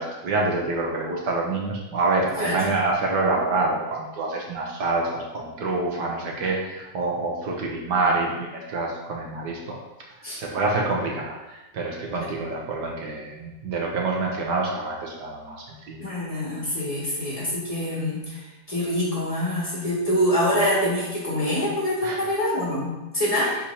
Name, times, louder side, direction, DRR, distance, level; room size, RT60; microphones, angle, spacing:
voice 1, 0.0-9.8 10.2-16.1 22.0-22.2 23.3-23.5, right 3 dB, 70° right, -1 dB, 1.6 m, -27 dB
voice 2, 16.0-18.4 18.7-23.5, left 1 dB, 20° left, -8 dB, 2.4 m, -25 dB
10.0 x 4.4 x 2.9 m, 1.0 s
omnidirectional pair, 1.9 m